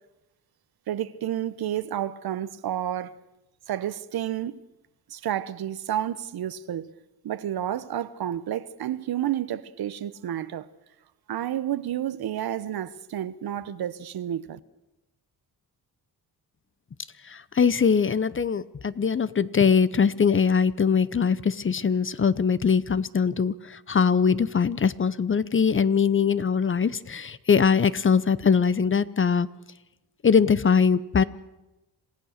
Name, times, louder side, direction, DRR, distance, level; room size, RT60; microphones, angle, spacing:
voice 1, 0.9-3.2 3.7-4.6 5.1-6.9 7.2-10.7 11.3-14.6, right 11 dB, 70° right, 1.0 m, -30 dB
voice 2, 17.2-29.5 30.2-31.2, left 6 dB, 30° left, 0.8 m, -22 dB
27.0 x 16.0 x 6.5 m
cardioid pair, 85°, 38 cm